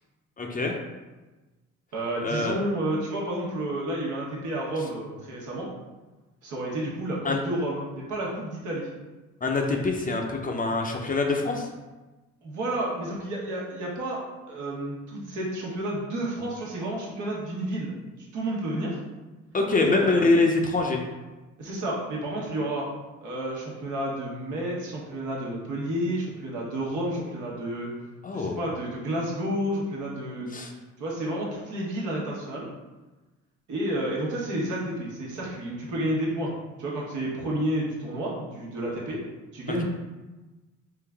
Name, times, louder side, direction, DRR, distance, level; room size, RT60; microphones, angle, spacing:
voice 1, 0.4-0.7 2.2-2.6 7.2-7.4 9.4-11.7 19.5-21.0 28.2-28.6 30.5-30.7, left 3 dB, 30° left, 2 dB, 0.5 m, -24 dB
voice 2, 1.9-5.7 6.4-8.9 12.4-14.2 14.5-17.9 18.3-19.0 19.8-20.3 21.6-22.9 23.2-27.9 28.3-32.7 33.7-36.5 36.8-39.2 39.5-39.8, right 1 dB, 75° right, -4 dB, 1.2 m, -30 dB
3.7 x 2.5 x 3.4 m, 1.2 s
cardioid pair, 90°, 30 cm